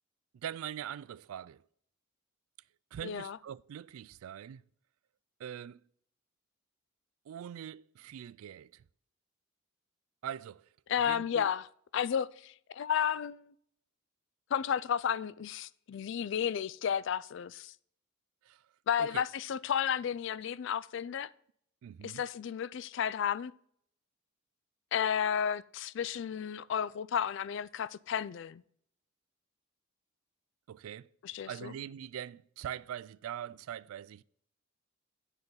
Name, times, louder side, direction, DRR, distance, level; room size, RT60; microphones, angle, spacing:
voice 1, 0.3-1.6 2.9-4.6 5.4-5.8 7.3-8.8 10.2-10.7 11.0-11.5 18.4-18.6 19.0-19.2 21.8-22.2 30.7-31.1 31.4-34.2, right 9 dB, 85° right, 0.3 m, -42 dB
voice 2, 3.0-3.4 10.9-11.6 11.9-13.5 14.5-17.7 18.9-21.3 22.0-23.5 24.9-28.6 31.2-31.7, left 8 dB, 60° left, 0.3 m, -32 dB
9.8 x 4.0 x 7.0 m
head